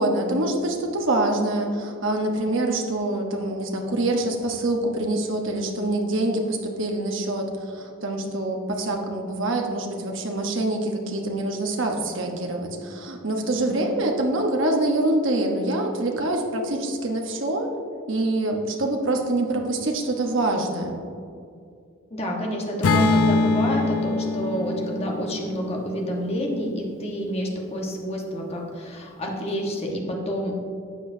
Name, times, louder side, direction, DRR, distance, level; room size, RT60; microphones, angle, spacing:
voice 1, 0.0-17.7 18.1-21.0, right 2 dB, 65° right, 2 dB, 1.1 m, -25 dB
voice 2, 22.1-30.6, equal, 30° left, -1 dB, 1.2 m, -29 dB
Acoustic guitar / Strum, 22.8-27.0, left 3 dB, 90° left, 0.6 m, -24 dB
12.0 x 7.8 x 2.7 m, 2.4 s
head